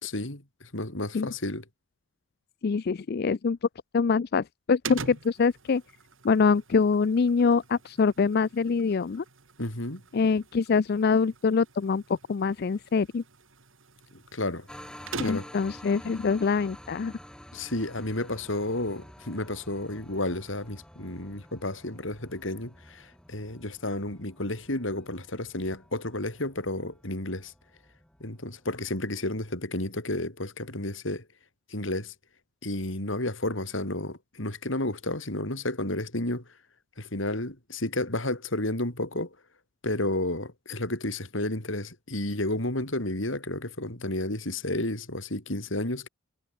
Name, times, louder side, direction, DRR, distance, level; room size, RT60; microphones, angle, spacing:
voice 1, 0.0-1.6 9.6-10.0 14.1-14.7 15.2-15.5 17.5-27.5 28.2-31.2 31.7-32.1 32.6-36.4 37.0-39.3 39.8-46.1, left 1 dB, 70° left, 4.3 m, -31 dB
voice 2, 2.6-3.7 3.9-5.8 6.2-9.2 10.1-13.2 15.2-17.1, left 5 dB, 50° left, 0.4 m, -24 dB
sound 1, 4.8-15.7, right 4 dB, 70° right, 4.2 m, -44 dB
sound 2, 14.7-29.5, equal, 5° left, 3.8 m, -50 dB
head